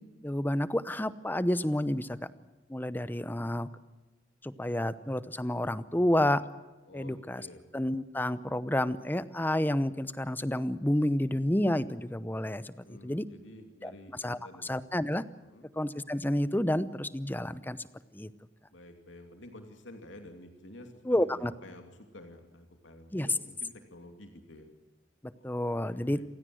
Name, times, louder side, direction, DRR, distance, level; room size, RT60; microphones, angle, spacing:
voice 1, 0.2-2.3 2.7-3.7 4.4-6.4 6.9-7.5 7.7-12.7 13.0-13.3 13.8-13.9 14.2-15.2 15.8-17.8 18.1-18.3 21.1-21.5 23.1-23.3 25.2-26.2, left 1 dB, 10° left, 15 dB, 0.7 m, -30 dB
voice 2, 6.9-7.6 12.8-14.7 15.4-15.7 18.7-24.7 25.3-26.2, left 1 dB, 80° left, 5 dB, 2.8 m, -50 dB
28.0 x 16.5 x 7.8 m, 1.1 s
head